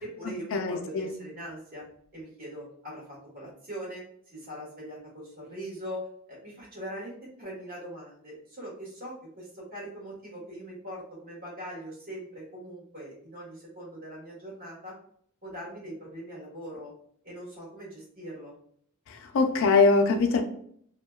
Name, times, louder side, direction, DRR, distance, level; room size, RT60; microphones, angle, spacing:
voice 1, 0.0-1.8 2.1-14.9 15.4-16.9 17.2-18.5, equal, 45° right, -5 dB, 1.4 m, -41 dB
voice 2, 0.5-1.1 19.1-20.4, left 4 dB, 65° left, 6 dB, 0.4 m, -23 dB
2.7 x 2.2 x 2.2 m, 0.64 s
head